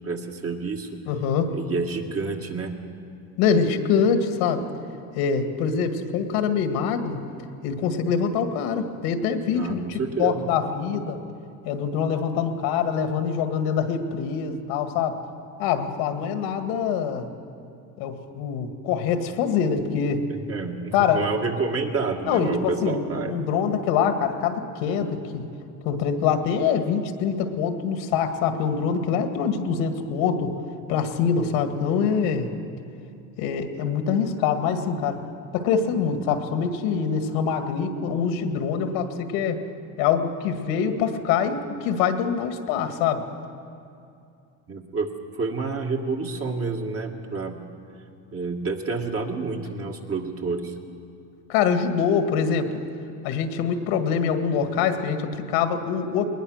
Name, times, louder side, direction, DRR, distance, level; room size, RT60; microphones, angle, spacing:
voice 1, 0.0-1.0 1.5-2.7 9.5-10.5 20.5-23.3 44.7-45.1 45.3-47.6 48.3-50.7, right 4 dB, 40° right, 2 dB, 2.2 m, -29 dB
voice 2, 1.1-1.6 3.4-4.7 5.1-7.2 7.6-11.2 11.7-15.2 15.6-17.3 18.0-20.3 20.9-21.3 22.2-25.5 25.8-30.6 30.9-32.5 33.4-35.2 35.5-39.6 40.0-43.2 51.5-52.7 53.2-56.3, left 6 dB, 80° left, 7 dB, 1.9 m, -24 dB
20.5 x 19.5 x 6.5 m, 2.5 s
supercardioid pair, 100°, 37 cm